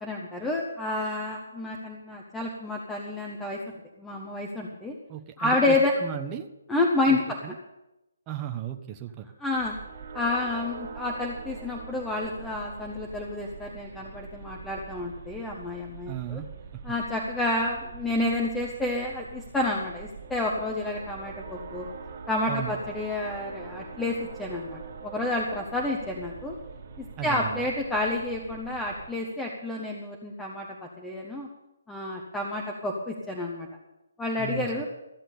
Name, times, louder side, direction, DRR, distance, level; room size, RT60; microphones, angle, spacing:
voice 1, 0.0-3.6 4.0-5.0 5.4-5.9 6.7-7.4 9.4-9.7 10.1-16.4 16.8-21.9 22.3-26.6 27.0-31.5 31.9-33.7 34.2-34.9, left 2 dB, 5° left, -1 dB, 1.4 m, -29 dB
voice 2, 5.1-6.5 7.4-7.5 8.3-9.3 16.1-16.5 16.7-16.8 22.5-22.7 27.2-27.6 34.4-34.9, right 10 dB, 20° right, 5 dB, 1.1 m, -35 dB
sound 1, 9.5-29.1, right 5 dB, 45° right, 2.2 m, -43 dB
15.0 x 7.6 x 8.6 m, 0.96 s
figure-of-eight pair, 150°, 0 cm